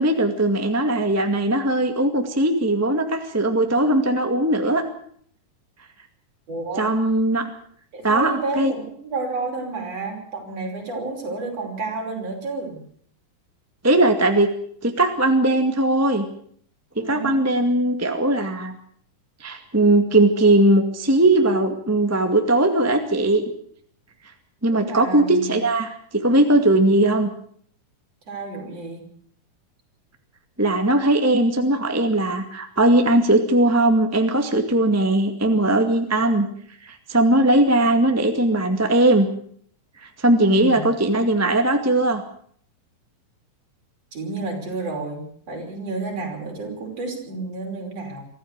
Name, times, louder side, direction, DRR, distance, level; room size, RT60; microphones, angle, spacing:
voice 1, 0.0-4.8 6.8-7.4 8.0-8.7 13.8-14.5 14.8-16.2 16.9-18.7 19.4-23.4 24.6-27.3 30.6-36.5 36.8-39.3 40.0-42.2, right 1 dB, 10° right, 5 dB, 1.1 m, -19 dB
voice 2, 6.5-6.9 7.9-12.8 17.0-17.6 24.7-25.6 28.3-29.0 40.4-40.8 44.1-48.2, right 3 dB, 45° right, 1 dB, 6.4 m, -30 dB
24.5 x 14.5 x 8.2 m, 0.62 s
omnidirectional pair, 4.0 m